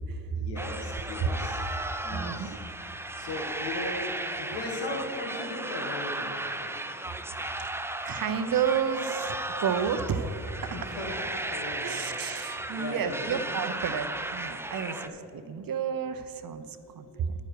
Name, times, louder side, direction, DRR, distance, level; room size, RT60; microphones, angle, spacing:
voice 1, 0.4-1.6 2.0-2.6 3.2-6.6 10.7-11.1 11.4-13.5 14.8-15.2 16.8-17.2, left 2 dB, 80° left, 0 dB, 1.8 m, -38 dB
sound 1, 0.6-15.1, right 1 dB, 5° right, 0.5 m, -35 dB
voice 2, 2.1-2.6 8.0-10.8 11.6-17.3, right 7 dB, 55° right, 10 dB, 0.8 m, -31 dB
10.5 x 9.2 x 4.7 m, 2.9 s
cardioid pair, 70°, 41 cm